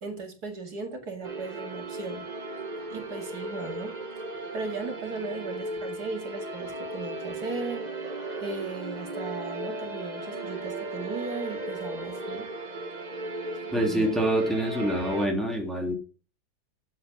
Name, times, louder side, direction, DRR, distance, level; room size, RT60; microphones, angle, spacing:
voice 1, 0.0-2.3 2.9-4.0 4.5-7.9 8.4-12.5 13.7-14.2, right 3 dB, 75° right, 3 dB, 2.7 m, -37 dB
sound 1, 1.2-15.3, right 2 dB, 30° right, 1.5 m, -36 dB
voice 2, 13.7-15.9, right 1 dB, ahead, 1 dB, 2.5 m, -26 dB
10.5 x 8.1 x 6.1 m, 0.37 s
omnidirectional pair, 1.7 m